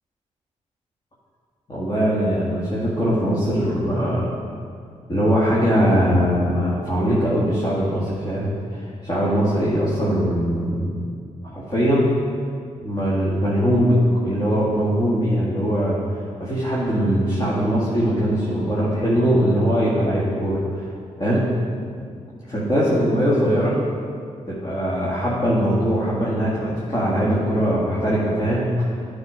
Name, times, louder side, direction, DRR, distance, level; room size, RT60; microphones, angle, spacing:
voice 1, 1.7-4.3 5.1-11.0 11.5-12.1 12.8-14.0 14.2-16.0 16.4-20.9 21.2-21.5 22.5-23.7 24.5-28.7, equal, 30° left, -8 dB, 2.1 m, -21 dB
9.6 x 4.3 x 5.2 m, 2.2 s
supercardioid pair, 55°, 14 cm